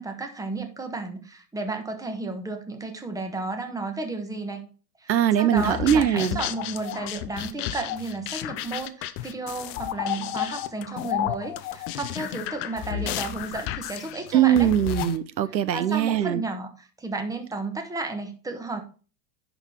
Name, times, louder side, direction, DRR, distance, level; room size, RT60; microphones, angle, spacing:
voice 1, 0.0-4.7 5.0-5.1 5.3-14.7 15.7-18.8, right 3 dB, 5° right, 1.2 m, -33 dB
voice 2, 5.1-6.4 14.3-16.4, right 10 dB, 85° right, 0.7 m, -21 dB
sound 1, 5.6-15.2, left 12 dB, 25° left, 0.4 m, -32 dB
10.5 x 4.1 x 4.4 m
hypercardioid pair, 105°, 50 cm